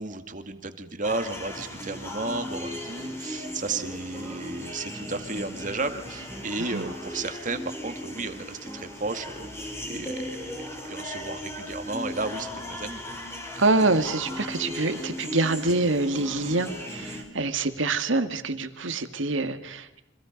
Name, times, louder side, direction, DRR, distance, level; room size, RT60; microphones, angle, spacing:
voice 1, 0.0-13.2, right 3 dB, 40° right, 8 dB, 2.2 m, -33 dB
sound 1, 1.0-17.2, equal, 15° left, 5.8 m, -37 dB
voice 2, 13.6-20.0, right 2 dB, 80° right, 9 dB, 2.0 m, -26 dB
30.0 x 26.0 x 5.3 m, 0.89 s
head